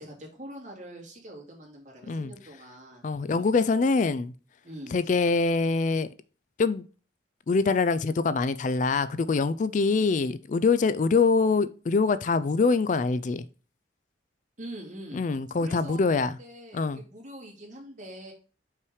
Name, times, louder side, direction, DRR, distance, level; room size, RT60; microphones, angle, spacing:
voice 1, 0.0-3.6 4.6-5.0 14.6-15.3 15.6-18.3, right 1 dB, 40° right, 2.5 m, -44 dB
voice 2, 3.0-4.3 4.9-6.1 6.6-6.8 7.5-13.4 15.1-16.3 16.7-17.0, left 4 dB, 45° left, 0.3 m, -24 dB
5.7 x 4.7 x 4.8 m
head